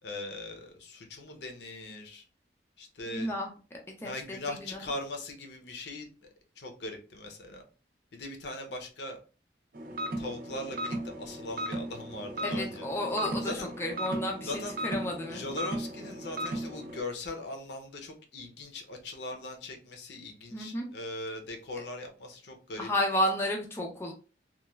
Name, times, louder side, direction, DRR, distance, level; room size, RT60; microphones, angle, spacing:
voice 1, 0.0-2.2 2.8-3.3 4.0-6.1 6.6-7.6 8.1-9.2 10.2-12.9 13.4-13.7 14.4-14.7 15.3-22.9, left 2 dB, 70° left, 4 dB, 0.6 m, -40 dB
voice 2, 3.1-3.5 4.0-4.9 12.4-14.5 14.8-15.4 20.5-20.9 22.8-24.1, left 1 dB, 15° left, 0 dB, 0.3 m, -32 dB
sound 1, 9.7-17.0, right 1 dB, 50° right, 0.5 m, -36 dB
3.0 x 2.2 x 2.2 m, 0.35 s
head